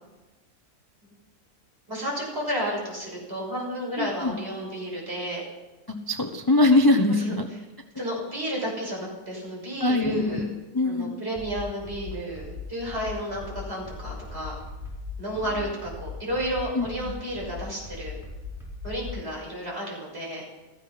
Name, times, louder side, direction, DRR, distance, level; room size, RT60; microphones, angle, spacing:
voice 1, 1.9-5.4 7.1-7.3 8.0-10.5 10.8-14.5 15.2-18.2 18.8-20.4, equal, 35° right, -3 dB, 6.2 m, -32 dB
voice 2, 4.0-4.3 6.1-7.5 9.8-10.5 10.7-11.2 16.7-17.1, left 2 dB, 20° left, 5 dB, 0.6 m, -22 dB
sound 1, 11.4-19.2, left 4 dB, ahead, 4.5 m, -38 dB
16.0 x 14.5 x 5.8 m, 1.1 s
omnidirectional pair, 1.8 m